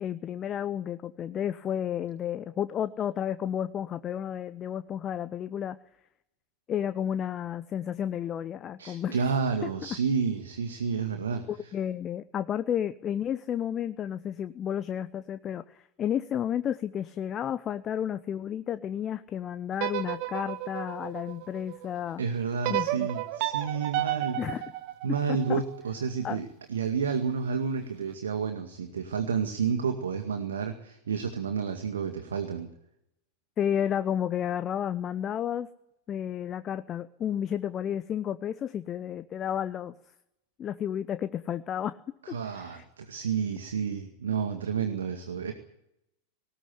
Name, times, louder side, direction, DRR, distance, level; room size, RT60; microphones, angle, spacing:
voice 1, 0.0-5.8 6.7-9.2 9.6-9.7 11.5-22.2 22.7-23.1 24.4-24.6 25.3-25.6 26.2-26.4 33.6-35.7 36.1-39.9 40.6-42.0 42.3-42.8, left 9 dB, 25° left, 13 dB, 0.8 m, -32 dB
voice 2, 8.8-11.4 22.2-24.4 25.0-32.7 42.2-45.5, right 6 dB, 65° right, 6 dB, 2.0 m, -30 dB
sound 1, 19.7-21.9 22.6-25.8, right 16 dB, 45° right, 1.4 m, -32 dB
19.5 x 18.0 x 9.3 m, 0.81 s
figure-of-eight pair, 90°, 0 cm